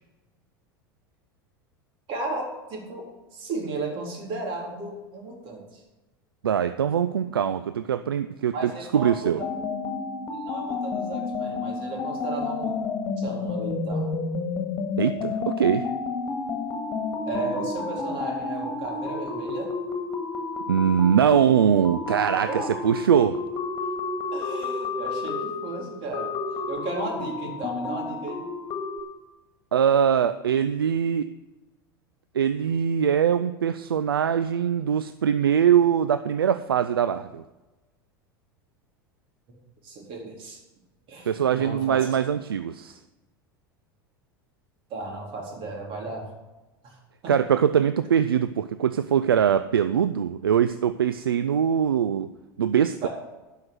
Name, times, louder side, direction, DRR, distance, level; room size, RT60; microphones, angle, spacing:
voice 1, 2.1-3.1 3.3-5.8 8.5-9.5 10.5-12.8 13.2-14.1 17.3-19.7 22.4-22.7 24.3-26.3 26.6-28.5 39.5-39.6 39.8-40.6 41.1-42.2 44.9-46.3 46.8-47.3 53.0-53.1, right 3 dB, 50° right, 0 dB, 3.8 m, -34 dB
voice 2, 6.4-9.4 15.0-15.9 20.7-23.4 29.7-31.3 32.3-37.4 41.3-43.0 47.3-52.3 52.6-53.1, right 8 dB, 85° right, 12 dB, 0.4 m, -22 dB
sound 1, 9.4-29.0, left 4 dB, 35° left, 1.9 m, -31 dB
12.0 x 5.8 x 7.7 m, 1.1 s
hypercardioid pair, 85°, 12 cm